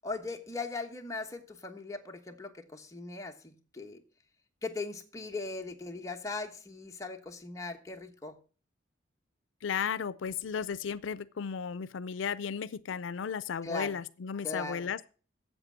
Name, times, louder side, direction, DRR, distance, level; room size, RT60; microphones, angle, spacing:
voice 1, 0.0-4.0 4.6-8.4 13.6-14.0 14.4-14.9, left 3 dB, 15° left, 1.2 m, -39 dB
voice 2, 9.6-15.1, left 7 dB, 85° left, 0.4 m, -34 dB
7.9 x 7.5 x 7.5 m
head